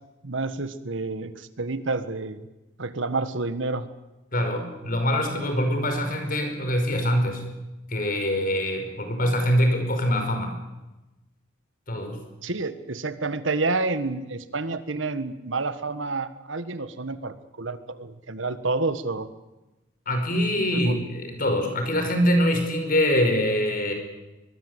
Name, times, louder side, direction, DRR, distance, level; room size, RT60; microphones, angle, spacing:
voice 1, 0.2-2.5 2.8-3.9 12.4-19.3 20.7-21.0, right 3 dB, 75° right, 12 dB, 1.5 m, -29 dB
voice 2, 4.3-7.4 7.9-10.6 11.9-12.2 20.1-23.9, equal, 45° left, 5 dB, 5.4 m, -24 dB
23.5 x 21.5 x 8.2 m, 1.0 s
head